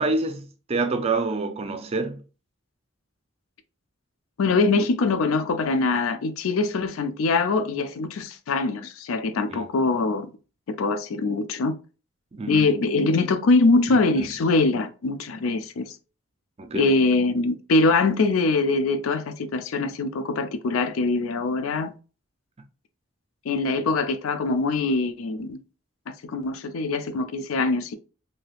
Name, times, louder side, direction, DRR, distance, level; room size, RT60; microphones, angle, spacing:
voice 1, 0.0-2.2 9.5-9.7 12.3-12.7 13.9-14.0 16.6-16.9, right 3 dB, 30° right, 0.4 m, -27 dB
voice 2, 4.4-10.3 10.7-11.7 12.4-16.0 16.8-21.9 23.4-25.6 26.1-28.0, left 3 dB, 90° left, 0.4 m, -23 dB
3.3 x 2.7 x 2.3 m
head